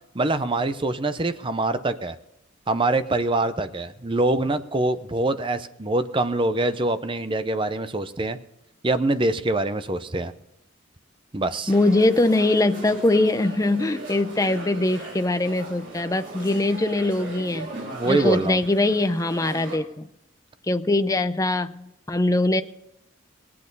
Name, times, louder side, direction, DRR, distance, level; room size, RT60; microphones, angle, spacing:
voice 1, 0.1-2.2 2.7-8.4 8.8-10.3 11.3-11.7 17.8-18.6, right 2 dB, 25° right, 11 dB, 0.7 m, -24 dB
voice 2, 11.7-17.7 18.1-20.1 20.7-22.6, left 2 dB, 15° left, 10 dB, 0.5 m, -22 dB
sound 1, 11.7-19.8, right 2 dB, 60° right, 4.1 m, -38 dB
19.0 x 8.6 x 5.4 m, 0.88 s
head